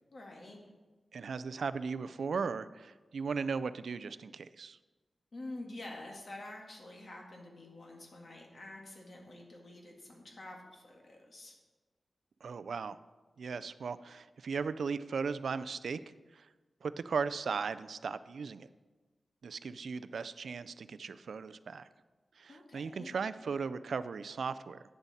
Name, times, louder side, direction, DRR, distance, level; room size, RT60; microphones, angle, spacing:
voice 1, 0.1-0.6 5.3-11.5 22.5-23.1, left 2 dB, 55° left, 0 dB, 1.7 m, -48 dB
voice 2, 1.1-4.8 12.4-13.0 13.4-16.5 16.8-18.7 19.4-21.9 22.4-24.8, right 5 dB, 90° right, 14 dB, 0.3 m, -37 dB
9.6 x 7.1 x 4.1 m, 1.3 s
wide cardioid pair, 120°, 0 cm